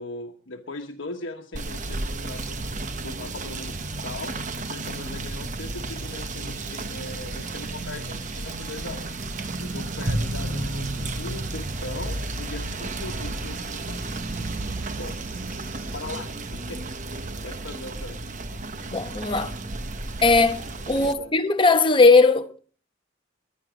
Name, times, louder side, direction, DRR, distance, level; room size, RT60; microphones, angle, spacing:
voice 1, 0.0-2.6 3.0-9.1 9.6-14.2 15.0-15.2 15.7-18.2 20.9-21.3, left 2 dB, 75° left, 1.3 m, -39 dB
Rain / Motor vehicle (road), 1.5-21.1, right 2 dB, 40° right, 0.9 m, -32 dB
sound 1, 5.6-16.0, right 3 dB, 65° right, 3.7 m, -49 dB
voice 2, 18.9-19.5 20.2-22.6, left 3 dB, 25° left, 1.0 m, -19 dB
21.0 x 10.5 x 4.9 m
head